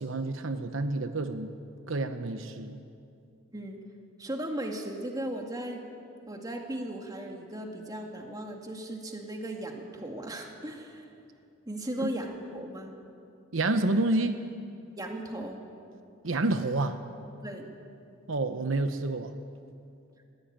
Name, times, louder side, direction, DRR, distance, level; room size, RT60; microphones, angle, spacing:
voice 1, 0.0-1.5 1.9-2.8 12.0-12.1 13.5-14.4 16.2-17.0 18.3-19.3, right 2 dB, 75° right, 9 dB, 0.9 m, -28 dB
voice 2, 3.5-3.8 4.2-5.9 6.3-11.1 11.7-12.9 15.0-15.6 17.4-17.7, right 1 dB, 20° right, 2 dB, 2.2 m, -37 dB
21.0 x 16.0 x 8.9 m, 2.5 s
head